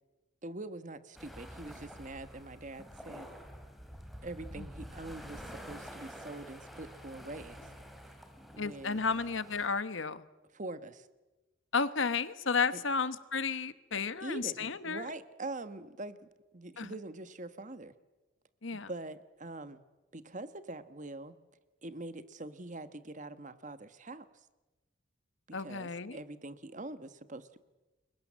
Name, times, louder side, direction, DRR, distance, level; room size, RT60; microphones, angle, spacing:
voice 1, 0.4-3.3 4.2-7.7 8.1-8.2 8.5-9.0 10.5-11.1 12.7-12.8 14.2-17.9 18.7-19.8 20.1-21.3 21.8-24.5 25.5-27.6, right 2 dB, 40° right, 12 dB, 1.3 m, -44 dB
sound 1, 1.1-9.7, equal, ahead, 3.5 m, -48 dB
voice 2, 8.6-10.3 11.7-15.1 16.8-16.9 18.6-18.9 25.5-26.2, left 5 dB, 75° left, 14 dB, 1.2 m, -33 dB
30.0 x 22.5 x 7.6 m, 1.1 s
head